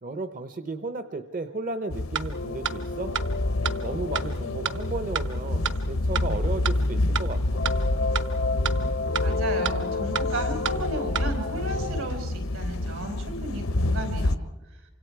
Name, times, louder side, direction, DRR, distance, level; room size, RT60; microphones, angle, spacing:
voice 1, 0.0-3.1 3.8-7.6, right 2 dB, 40° right, 10 dB, 0.8 m, -34 dB
sound 1, 1.9-14.4, left 1 dB, 80° left, 0.9 m, -28 dB
sound 2, 2.2-2.3 2.6-2.7 3.1-3.2 3.6-3.7 4.2-4.3 4.7-4.8 5.2-5.3 5.6-5.7 6.1-6.2 6.6-6.7 7.2-7.3 7.7-7.8 8.2-8.3 8.6-8.7 9.1-9.2 9.6-9.7 10.2-10.3 10.7-10.8 11.2-11.3, right 8 dB, 60° right, 1.2 m, -27 dB
sound 3, 2.3-7.2 7.5-12.1, left 3 dB, 55° left, 0.6 m, -33 dB
voice 2, 9.2-14.4, right 1 dB, 75° right, 4 dB, 5.2 m, -33 dB
28.5 x 25.5 x 4.7 m, 1.1 s
head